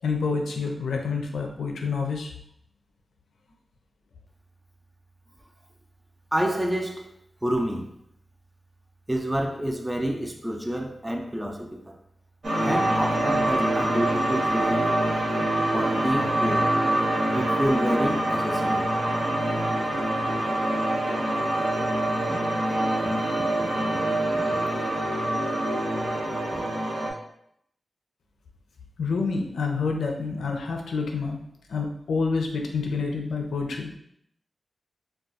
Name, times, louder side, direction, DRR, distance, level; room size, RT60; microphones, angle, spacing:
voice 1, 0.0-2.3 29.0-31.4 31.7-34.0, left 4 dB, 90° left, 0.4 m, -28 dB
voice 2, 6.3-7.1 7.4-7.9 9.1-11.9 12.5-14.8 15.7-16.7 17.3-18.9 22.7-23.3, equal, 15° right, 0.5 m, -28 dB
sound 1, 12.4-27.1, right 1 dB, 60° right, 1.0 m, -25 dB
2.4 x 2.3 x 4.0 m
cardioid pair, 55°, 0 cm